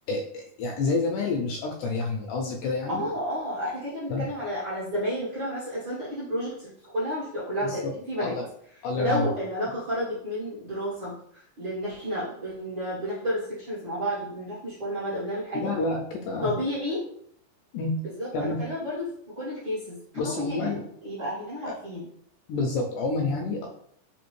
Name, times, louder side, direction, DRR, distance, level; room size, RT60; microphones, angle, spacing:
voice 1, 0.1-3.1 4.1-4.3 7.6-8.5 8.8-9.3 15.5-16.5 17.7-18.0 18.3-18.6 20.2-20.8 21.7-21.8 22.5-23.7, left 3 dB, 80° left, 1 dB, 1.8 m, -29 dB
voice 2, 2.9-8.3 9.0-15.7 16.4-17.0 18.2-19.1 19.3-20.0 20.2-20.8 21.0-22.0, equal, 55° right, -10 dB, 1.3 m, -31 dB
4.9 x 2.7 x 3.1 m, 0.67 s
omnidirectional pair, 3.8 m